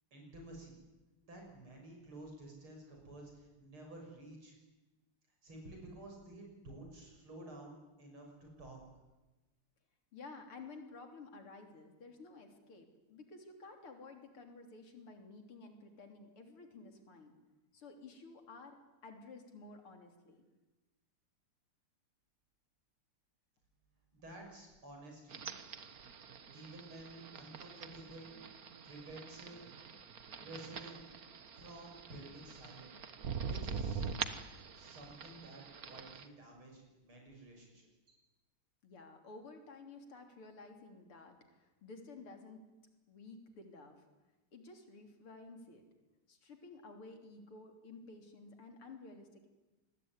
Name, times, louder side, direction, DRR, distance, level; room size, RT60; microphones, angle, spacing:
voice 1, 0.1-0.7 1.2-4.6 5.4-8.8 24.1-25.4 26.5-28.3 28.8-29.6 30.4-31.0 31.6-32.9 33.4-34.1 34.7-37.9, right 1 dB, 75° right, 1 dB, 7.5 m, -52 dB
voice 2, 10.1-17.3 17.7-20.4 38.8-42.6 43.1-44.0 44.5-45.8 46.3-49.5, left 3 dB, 90° left, 5 dB, 4.2 m, -53 dB
sound 1, 25.3-36.3, right 6 dB, 45° right, 1.7 m, -44 dB
26.5 x 21.0 x 9.8 m, 1.1 s
omnidirectional pair, 2.3 m